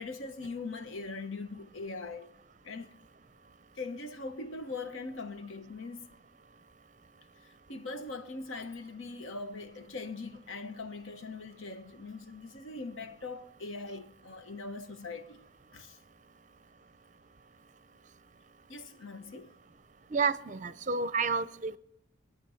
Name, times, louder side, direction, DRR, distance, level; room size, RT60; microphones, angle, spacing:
voice 1, 0.0-2.3 2.6-2.9 3.8-6.1 7.7-15.4 15.7-16.0 18.7-19.5, left 3 dB, 70° left, 1.1 m, -41 dB
voice 2, 20.1-21.8, right 4 dB, 35° right, 0.5 m, -30 dB
24.5 x 9.3 x 5.7 m
head